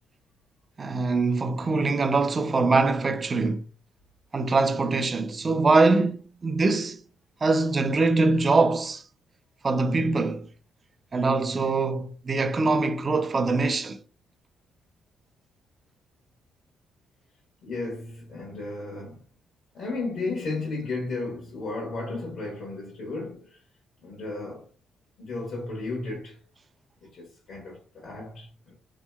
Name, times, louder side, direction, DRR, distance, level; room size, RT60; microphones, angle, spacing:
voice 1, 0.8-3.7 4.3-7.0 7.4-9.0 9.6-10.5 11.1-14.0, right 3 dB, 35° right, 0.3 m, -23 dB
voice 2, 17.6-19.2 19.7-23.6 24.0-24.7 25.2-26.4 27.0-28.7, left 3 dB, 75° left, 1.0 m, -34 dB
2.9 x 2.8 x 2.2 m
cardioid pair, 90°, 0 cm